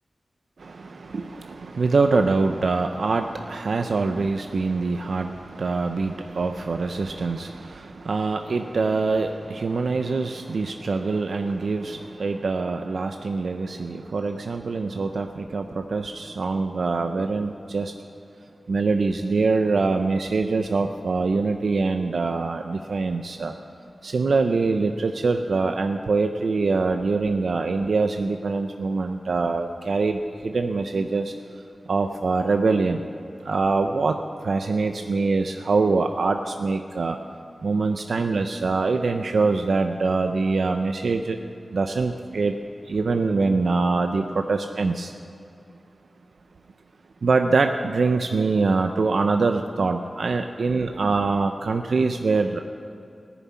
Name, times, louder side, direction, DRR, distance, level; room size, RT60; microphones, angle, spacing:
voice 1, 0.6-17.9 18.7-23.5 24.0-33.0 33.4-37.2 37.6-41.4 41.7-42.6 42.9-45.1 47.2-52.6, right 3 dB, 75° right, 6 dB, 0.5 m, -24 dB
15.5 x 7.2 x 9.4 m, 2.6 s
wide cardioid pair, 105°, 0 cm